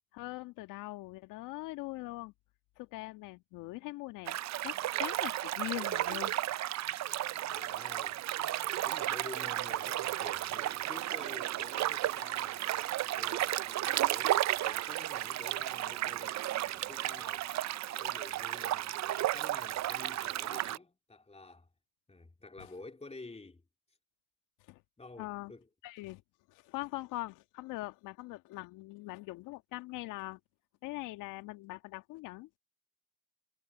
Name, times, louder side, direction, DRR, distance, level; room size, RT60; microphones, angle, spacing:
voice 1, 0.1-2.3 2.8-4.4 4.6-6.3 22.6-22.7 24.6-24.8 25.2-25.5 25.8-26.2 26.5-30.4 30.8-32.6, left 20 dB, 75° left, 1.8 m, -42 dB
sound 1, 4.3-20.8, right 14 dB, 55° right, 0.8 m, -33 dB
voice 2, 7.5-8.2 8.8-12.6 13.1-17.5 18.0-21.7 22.1-23.6 25.0-25.7, left 3 dB, 20° left, 2.9 m, -50 dB
hypercardioid pair, 45°, 32 cm